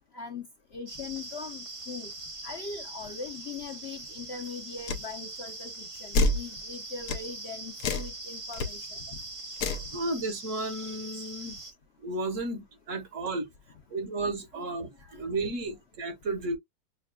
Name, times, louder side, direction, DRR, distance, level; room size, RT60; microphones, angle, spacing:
voice 1, 0.1-2.1 2.4-9.2, left 5 dB, 55° left, 0.8 m, -41 dB
sound 1, 0.9-11.7, right 2 dB, 40° right, 0.4 m, -42 dB
sound 2, 4.9-5.1 6.1-6.4 7.1-7.3 7.8-8.1 8.5-8.7 9.6-9.9, left 2 dB, 75° left, 1.2 m, -26 dB
voice 2, 9.9-11.6 12.0-13.5 13.9-16.6, right 2 dB, 55° right, 1.2 m, -33 dB
6.5 x 2.3 x 2.2 m
omnidirectional pair, 1.7 m